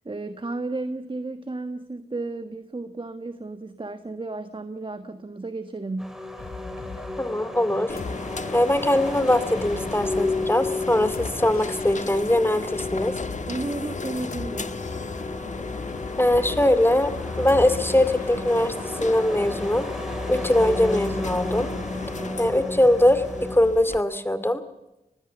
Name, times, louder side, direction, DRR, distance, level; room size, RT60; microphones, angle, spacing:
voice 1, 0.0-6.2 13.5-14.8, right 2 dB, 35° right, 10 dB, 1.4 m, -33 dB
sound 1, 6.0-23.6, left 2 dB, 5° right, 4.7 m, -34 dB
sound 2, 6.4-19.1, left 3 dB, 85° left, 3.5 m, -42 dB
voice 2, 7.2-8.0 8.5-13.2 16.2-17.1 17.4-18.7 19.0-19.9 20.3-21.7 22.4-24.6, left 1 dB, 15° left, 13 dB, 2.4 m, -21 dB
sound 3, 7.9-24.0, left 4 dB, 55° left, 1.4 m, -34 dB
25.5 x 19.5 x 7.1 m, 0.95 s
cardioid pair, 50°, 15 cm